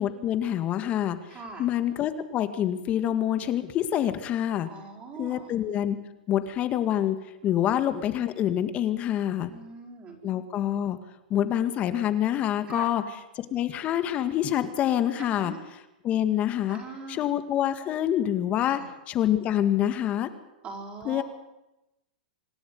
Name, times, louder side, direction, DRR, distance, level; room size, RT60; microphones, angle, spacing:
voice 1, 0.0-1.2 1.6-4.7 5.2-6.0 6.3-7.2 7.4-9.5 10.2-11.0 11.3-13.0 13.4-15.5 16.0-16.8 17.1-18.8 19.1-20.3 21.1-21.2, left 11 dB, 30° left, 10 dB, 1.9 m, -26 dB
voice 2, 1.3-1.7 4.7-5.5 9.5-10.2 12.7-12.9 15.2-15.6 16.7-17.2 18.6-18.8 20.6-21.2, right 4 dB, 25° right, -1 dB, 5.2 m, -41 dB
26.0 x 12.0 x 9.5 m, 0.93 s
hypercardioid pair, 145°, 5 cm